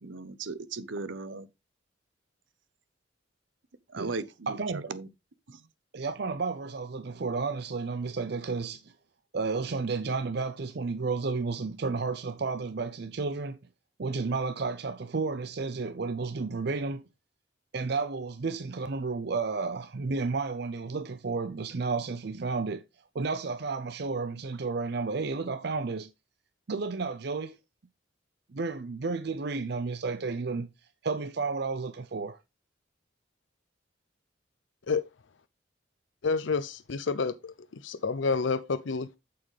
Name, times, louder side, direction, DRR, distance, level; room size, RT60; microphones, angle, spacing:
voice 1, 0.0-1.5 3.9-4.6 4.9-5.1, right 3 dB, 85° right, 0.8 m, -37 dB
voice 2, 4.5-4.9 5.9-8.9 9.3-13.6 14.0-17.0 17.7-22.8 23.1-26.1 26.7-27.6 28.5-30.7 31.0-32.4, right 4 dB, 60° right, 0.6 m, -32 dB
voice 3, 36.2-37.5 37.8-39.2, left 4 dB, 75° left, 0.6 m, -29 dB
8.8 x 6.9 x 3.2 m
head